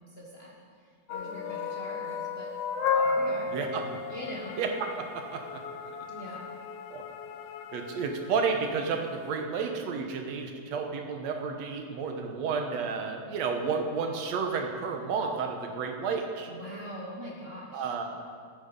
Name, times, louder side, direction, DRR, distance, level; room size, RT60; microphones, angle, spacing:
voice 1, 0.0-2.5 3.0-3.5 4.1-4.6 6.1-6.4 16.5-17.9, equal, 40° left, -4 dB, 0.8 m, -43 dB
sound 1, 1.1-8.6, left 4 dB, 75° left, 1.4 m, -34 dB
voice 2, 3.5-3.8 4.6-5.4 6.9-7.1 7.7-16.5 17.7-18.0, right 5 dB, 70° right, 4 dB, 2.0 m, -31 dB
13.5 x 8.9 x 5.2 m, 2.1 s
omnidirectional pair, 3.6 m